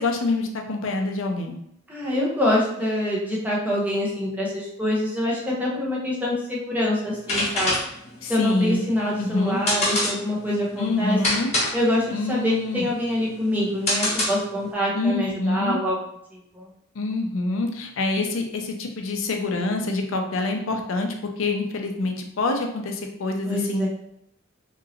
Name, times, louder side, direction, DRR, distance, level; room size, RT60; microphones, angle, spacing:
voice 1, 0.0-1.6 8.2-8.8 9.2-9.6 10.8-11.5 12.1-12.9 14.9-15.8 16.9-23.9, left 2 dB, 75° left, 3 dB, 0.5 m, -26 dB
voice 2, 1.9-7.8 8.3-11.2 11.7-16.0 16.3-16.7 23.4-23.9, left 1 dB, 10° right, -5 dB, 0.7 m, -25 dB
sound 1, 7.1-14.7, left 1 dB, 30° left, 1.0 m, -27 dB
2.9 x 2.7 x 2.7 m, 0.74 s
head